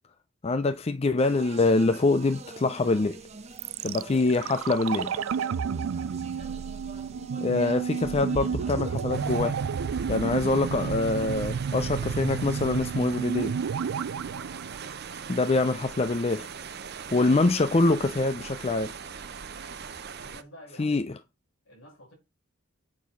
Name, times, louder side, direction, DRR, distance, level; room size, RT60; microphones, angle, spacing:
voice 1, 0.4-3.2 3.8-5.2 7.4-9.6 10.1-13.5 15.3-16.5 17.1-18.9 20.8-21.2, left 3 dB, 30° left, 0.5 m, -25 dB
Speech, 1.2-9.4, right 4 dB, 30° right, 1.0 m, -46 dB
sound 1, 3.6-15.6 15.8-15.9, right 6 dB, 80° right, 0.4 m, -31 dB
voice 2, 3.9-4.2 6.2-6.6 14.3-14.6 19.7-21.0 21.6-22.1, left 1 dB, 75° left, 6.0 m, -52 dB
sound 2, 9.1-20.4, right 6 dB, 50° right, 0.8 m, -40 dB
8.4 x 4.7 x 5.8 m
head